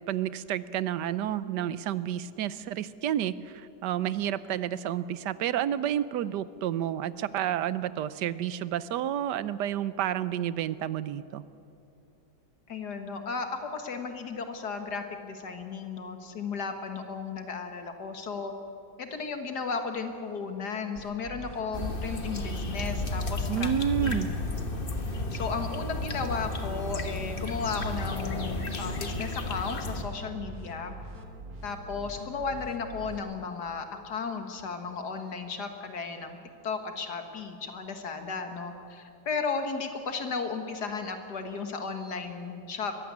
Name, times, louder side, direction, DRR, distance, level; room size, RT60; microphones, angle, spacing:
voice 1, 0.1-11.4 23.5-24.3, right 10 dB, 80° right, 16 dB, 1.3 m, -30 dB
voice 2, 12.7-18.5 19.0-23.7 24.0-24.2 25.3-30.9 31.6-36.4 36.6-43.0, left 5 dB, 70° left, 6 dB, 2.2 m, -34 dB
sound 1, 21.0-33.2, right 1 dB, 60° right, 2.1 m, -43 dB
sound 2, 21.7-30.0, left 2 dB, 35° left, 1.4 m, -33 dB
22.0 x 15.5 x 9.6 m, 2.8 s
omnidirectional pair, 1.8 m